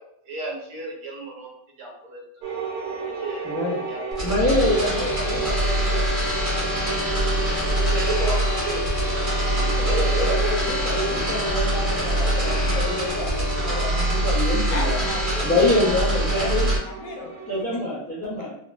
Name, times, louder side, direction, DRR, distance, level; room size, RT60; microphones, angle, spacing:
voice 1, 0.3-1.5 1.8-2.2 3.2-4.0 7.8-9.3 9.8-10.6, right 2 dB, 70° right, -3 dB, 1.6 m, -31 dB
sound 1, 2.4-17.6, right 4 dB, 90° right, 1.7 m, -34 dB
voice 2, 3.4-3.8 4.2-6.0 9.5-15.1 15.4-16.7 17.5-18.5, left 2 dB, 15° left, -8 dB, 0.4 m, -26 dB
sound 2, 4.1-16.8, right 1 dB, 40° right, 0.7 m, -24 dB
sound 3, 4.4-13.7, left 7 dB, 60° left, 0.7 m, -33 dB
voice 3, 14.7-17.3 17.7-17.8 18.4-18.5, left 3 dB, 85° left, 2 dB, 1.6 m, -35 dB
3.8 x 2.0 x 2.6 m, 0.69 s
omnidirectional pair, 2.4 m